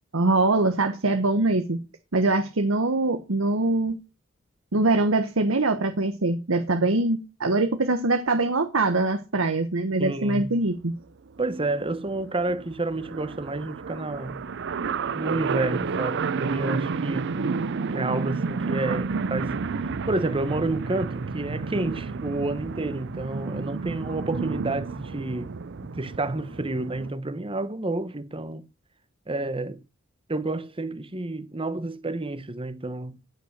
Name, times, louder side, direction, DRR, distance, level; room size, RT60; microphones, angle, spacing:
voice 1, 0.1-1.8 2.1-4.0 4.7-10.9, right 2 dB, 90° right, 1.2 m, -23 dB
voice 2, 10.0-10.6 11.4-14.5 15.1-17.3 17.9-25.5 25.8-28.6 29.3-29.8 30.3-33.2, right 2 dB, 25° right, 1.0 m, -30 dB
sound 1, 10.6-10.7 11.0-11.1 11.3-27.1, right 4 dB, 60° right, 0.5 m, -31 dB
16.0 x 5.7 x 6.5 m
head